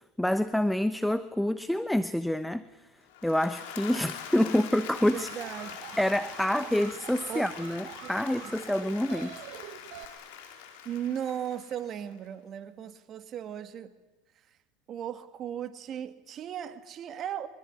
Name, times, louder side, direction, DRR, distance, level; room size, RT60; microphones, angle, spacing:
voice 1, 0.0-2.7 3.2-5.3 6.0-9.4, left 1 dB, 5° left, 13 dB, 0.9 m, -27 dB
Applause / Crowd, 3.0-12.2, left 8 dB, 70° left, 4.5 m, -44 dB
Alarm, 4.9-10.0, right 11 dB, 60° right, 2.2 m, -46 dB
voice 2, 5.1-5.8 7.3-7.4 8.0-8.1 8.4-8.5 10.8-13.9 14.9-17.5, right 9 dB, 40° right, 10 dB, 2.2 m, -36 dB
24.5 x 23.0 x 9.8 m, 1.1 s
hypercardioid pair, 85°, 0 cm